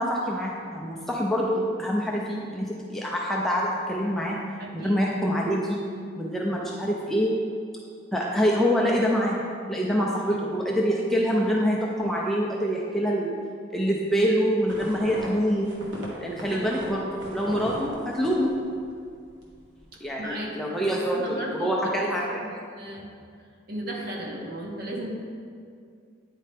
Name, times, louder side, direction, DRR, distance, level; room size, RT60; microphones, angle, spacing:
voice 1, 0.0-4.4 4.7-5.8 6.2-7.3 8.1-9.4 9.7-13.3 13.7-15.7 16.2-17.0 17.3-18.5 20.0-22.4, equal, ahead, -3 dB, 0.4 m, -25 dB
voice 2, 4.6-5.0 10.2-10.4 16.5-16.8 19.9-23.1 23.7-25.2, right 1 dB, 50° right, -1 dB, 0.9 m, -36 dB
sound 1, 14.7-19.0 19.3-19.8, equal, 65° right, 1.3 m, -38 dB
9.2 x 4.3 x 3.3 m, 2.2 s
head